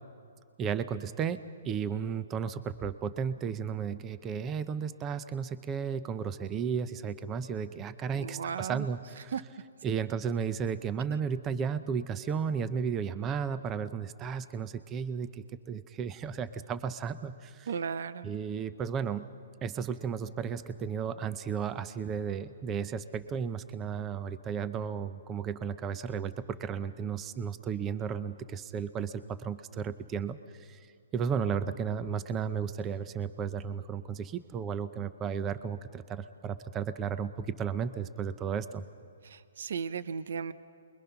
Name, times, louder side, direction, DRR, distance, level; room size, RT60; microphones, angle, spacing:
voice 1, 0.6-1.4 1.6-9.0 9.2-9.3 9.8-17.7 18.2-19.3 19.6-30.8 31.1-38.9, right 7 dB, 20° right, 13 dB, 0.7 m, -34 dB
voice 2, 8.1-8.9 9.2-9.4 11.1-11.2 17.7-18.3 39.2-40.5, right 6 dB, 70° right, 14 dB, 0.9 m, -36 dB
28.5 x 22.0 x 5.9 m, 2.3 s
hypercardioid pair, 150°, 0 cm